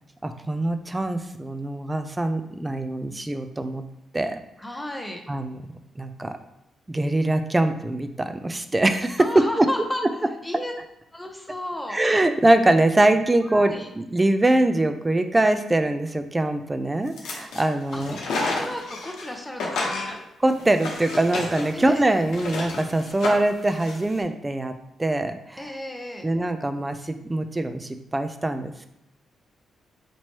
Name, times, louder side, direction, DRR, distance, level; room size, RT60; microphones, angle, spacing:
voice 1, 0.2-3.8 4.1-4.4 5.3-5.7 6.0-6.3 6.9-9.7 11.9-18.2 18.5-18.6 20.4-24.7 25.0-25.7 26.2-28.9, right 1 dB, 20° right, 8 dB, 0.4 m, -23 dB
voice 2, 4.6-5.2 9.2-10.0 10.4-10.7 11.1-12.0 13.5-13.9 17.9-18.0 18.6-20.2 21.7-22.2 25.6-26.3, left 1 dB, 10° left, 3 dB, 0.7 m, -33 dB
sound 1, 17.1-17.6 17.9-19.3 19.6-24.1, left 3 dB, 85° left, 0.8 m, -31 dB
4.4 x 3.0 x 2.9 m, 0.85 s
cardioid pair, 80°, 0 cm